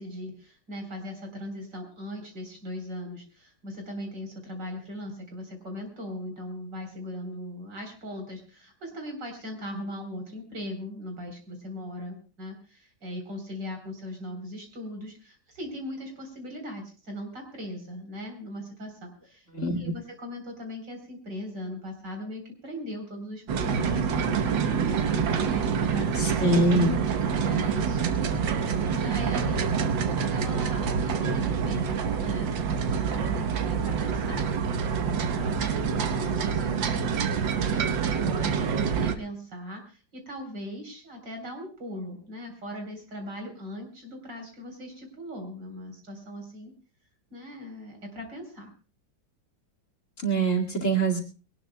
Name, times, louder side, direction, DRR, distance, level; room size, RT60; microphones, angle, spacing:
voice 1, 0.0-26.5 27.4-34.5 34.7-46.7 47.3-48.7, left 1 dB, 70° right, 4 dB, 4.5 m, -39 dB
sound 1, 23.5-39.2, right 6 dB, 90° right, 1.8 m, -26 dB
voice 2, 26.1-27.0 50.2-51.2, right 2 dB, 40° left, 1 dB, 2.5 m, -24 dB
22.5 x 18.5 x 2.2 m, 0.34 s
omnidirectional pair, 2.0 m